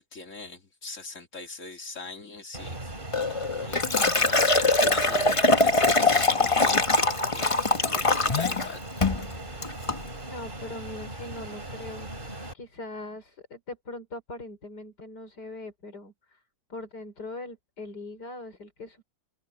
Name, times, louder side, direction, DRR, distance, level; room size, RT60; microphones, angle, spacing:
voice 1, 0.0-3.0 3.5-6.8 7.3-8.1 8.3-9.1, left 3 dB, 50° left, 2.8 m, -41 dB
Fixed-wing aircraft airplane, 2.5-12.5, right 1 dB, 30° right, 4.8 m, -39 dB
Liquid, 3.1-8.7 9.0-9.3 9.6-10.0, left 3 dB, 20° left, 1.0 m, -23 dB
voice 2, 10.3-12.1 12.5-16.4 16.7-19.0, left 2 dB, 85° left, 5.2 m, -41 dB
open air
omnidirectional pair, 1.7 m